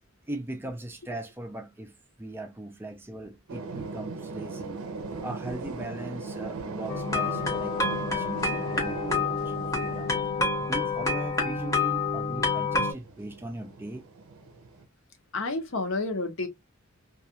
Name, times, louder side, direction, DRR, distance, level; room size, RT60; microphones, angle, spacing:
voice 1, 0.3-4.8 5.1-10.2 10.6-14.0, right 1 dB, 10° right, 0.3 m, -39 dB
sound 1, 3.5-14.8, right 4 dB, 80° right, 0.5 m, -40 dB
sound 2, 6.9-12.9, left 3 dB, 15° left, 0.7 m, -28 dB
voice 2, 15.3-16.5, left 3 dB, 60° left, 0.7 m, -30 dB
2.3 x 2.2 x 2.8 m
head